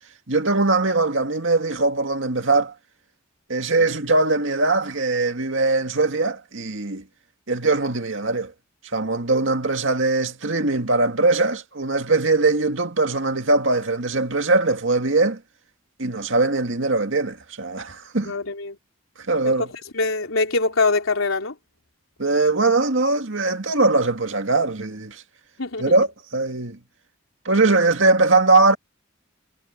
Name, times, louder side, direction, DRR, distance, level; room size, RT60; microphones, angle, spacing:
voice 1, 0.3-2.7 3.5-7.0 7.5-8.5 8.9-15.4 16.0-18.3 19.3-19.7 22.2-25.2 25.8-26.8 27.5-28.8, right 3 dB, 65° right, 2.2 m, -21 dB
voice 2, 18.2-18.8 19.4-21.6 25.6-26.0, left 3 dB, 90° left, 3.9 m, -24 dB
head